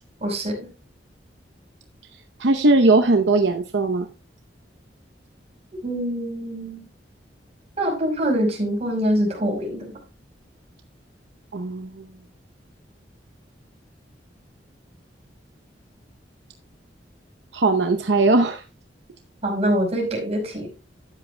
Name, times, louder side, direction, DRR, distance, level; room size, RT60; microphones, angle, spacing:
voice 1, 0.2-0.7 5.8-6.8 7.8-9.9 19.4-20.7, equal, 35° right, 0 dB, 5.3 m, -24 dB
voice 2, 2.4-4.1 11.5-12.1 17.5-18.6, right 2 dB, 75° right, 6 dB, 0.8 m, -19 dB
13.0 x 10.5 x 2.2 m, 0.30 s
head